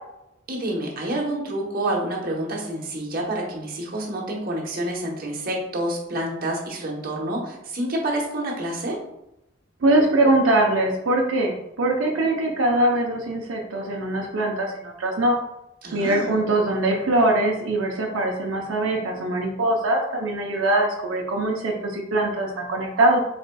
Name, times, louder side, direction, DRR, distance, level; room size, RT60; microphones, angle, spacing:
voice 1, 0.5-9.0 15.8-16.4, right 1 dB, 45° right, -1 dB, 1.0 m, -28 dB
voice 2, 9.8-15.4 15.9-23.2, right 1 dB, 80° right, -1 dB, 0.6 m, -22 dB
4.1 x 4.0 x 2.2 m, 0.87 s
head